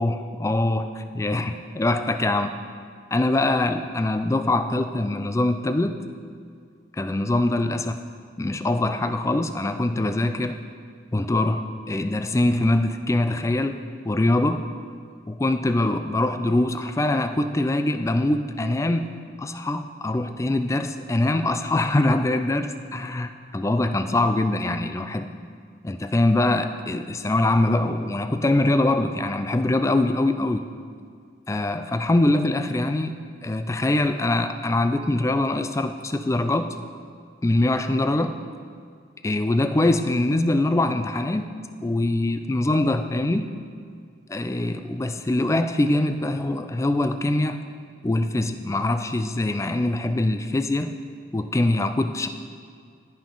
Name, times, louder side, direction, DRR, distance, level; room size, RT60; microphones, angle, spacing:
voice 1, 0.0-2.5 3.1-6.0 7.0-8.0 8.4-10.6 11.1-13.8 14.0-14.7 15.3-19.1 19.4-25.3 25.8-30.6 31.5-36.8 37.4-38.4 39.2-41.5 41.8-43.5 44.3-47.7 48.0-50.9 51.3-52.3, left 2 dB, 15° left, 9 dB, 0.3 m, -23 dB
14.5 x 5.5 x 3.9 m, 2.1 s
head